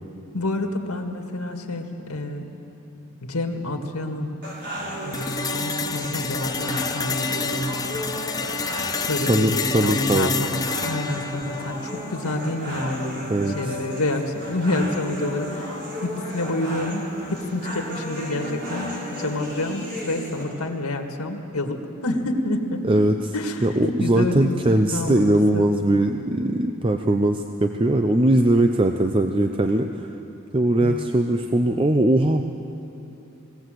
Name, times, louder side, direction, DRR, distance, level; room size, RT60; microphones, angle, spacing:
voice 1, 0.3-2.4 3.2-4.3 5.0-8.0 9.0-13.3 13.6-22.9 23.3-25.7 30.8-31.0 31.6-31.8, left 2 dB, 90° left, 4 dB, 1.9 m, -28 dB
sound 1, 4.4-20.4, equal, 50° right, 6.2 m, -34 dB
sound 2, 5.1-13.1, left 4 dB, 15° left, 0.6 m, -29 dB
voice 2, 9.3-10.4 13.3-13.8 22.8-23.3 23.6-30.1 30.5-32.4, right 1 dB, 25° right, 5 dB, 0.6 m, -20 dB
21.0 x 17.5 x 7.8 m, 2.9 s
head